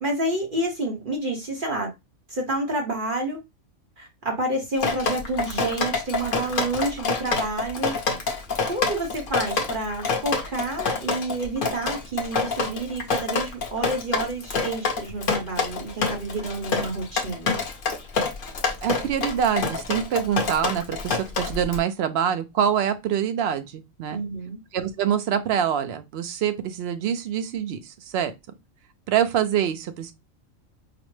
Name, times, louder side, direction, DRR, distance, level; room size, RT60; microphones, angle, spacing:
voice 1, 0.0-1.9 2.3-3.4 4.0-7.9 8.6-17.6 24.1-24.6, right 2 dB, 45° right, 1.0 m, -29 dB
Drip, 4.8-21.8, left 4 dB, 45° left, 0.8 m, -27 dB
voice 2, 18.8-24.2 24.7-28.3 29.1-30.1, right 9 dB, 65° right, 0.7 m, -25 dB
5.0 x 2.1 x 3.1 m
omnidirectional pair, 1.4 m